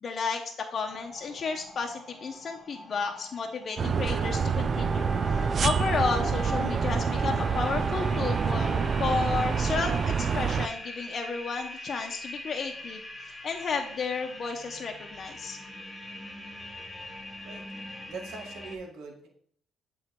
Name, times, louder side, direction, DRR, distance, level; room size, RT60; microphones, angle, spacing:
voice 1, 0.0-15.6, left 4 dB, 45° left, 3 dB, 0.8 m, -32 dB
sound 1, 0.9-18.8, left 1 dB, 10° left, 1.0 m, -44 dB
sound 2, 3.8-10.7, right 6 dB, 45° right, 0.3 m, -27 dB
Wind instrument woodwind instrument, 4.0-9.2, right 1 dB, 10° right, 2.0 m, -37 dB
voice 2, 17.4-19.3, right 4 dB, 75° right, 0 dB, 1.6 m, -43 dB
7.6 x 3.2 x 4.5 m, 0.63 s
cardioid pair, 90°, 0 cm